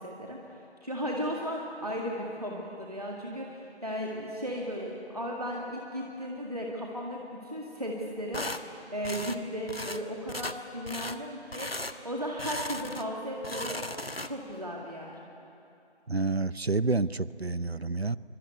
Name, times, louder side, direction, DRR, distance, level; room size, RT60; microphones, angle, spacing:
voice 1, 0.0-13.8 14.2-15.2, equal, 35° right, -2 dB, 2.2 m, -36 dB
sound 1, 8.3-8.6 9.0-9.4 9.7-10.0 10.3-10.6 10.9-11.2 11.5-12.0 12.4-13.1 13.4-14.5, left 1 dB, 60° left, 1.5 m, -36 dB
voice 2, 16.1-18.2, right 3 dB, 65° right, 18 dB, 0.8 m, -29 dB
25.5 x 23.0 x 9.5 m, 2.8 s
figure-of-eight pair, 175°, 33 cm